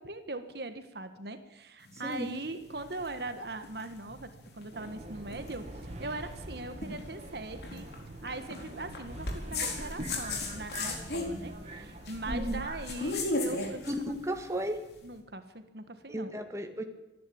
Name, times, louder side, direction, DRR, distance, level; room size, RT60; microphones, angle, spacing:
voice 1, 0.0-7.9 8.2-13.9 15.0-16.3, right 2 dB, 60° right, 9 dB, 1.6 m, -40 dB
sound 1, 1.8-15.0, left 2 dB, 60° left, 4.4 m, -38 dB
Subway metro underground, 4.7-13.1, right 1 dB, 40° right, 2.5 m, -44 dB
voice 2, 12.3-12.6 13.9-14.8 16.1-16.8, equal, 15° right, 5 dB, 2.0 m, -34 dB
26.5 x 11.0 x 8.7 m, 1.0 s
head